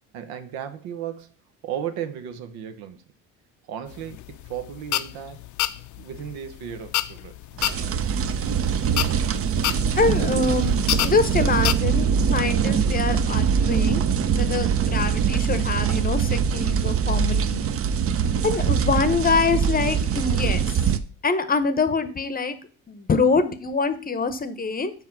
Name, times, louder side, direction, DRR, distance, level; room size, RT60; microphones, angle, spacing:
voice 1, 0.1-1.3 1.6-3.0 3.7-5.4 6.0-7.6, right 9 dB, 85° right, 0.9 m, -35 dB
sound 1, 3.9-11.7, left 14 dB, 55° left, 0.5 m, -29 dB
sound 2, 7.6-21.0, right 7 dB, 40° right, 0.6 m, -23 dB
voice 2, 10.0-14.0 14.3-17.7 18.4-20.7 21.2-22.6 22.9-24.9, left 4 dB, 25° left, 0.8 m, -24 dB
5.5 x 4.6 x 5.8 m
supercardioid pair, 90°, 36 cm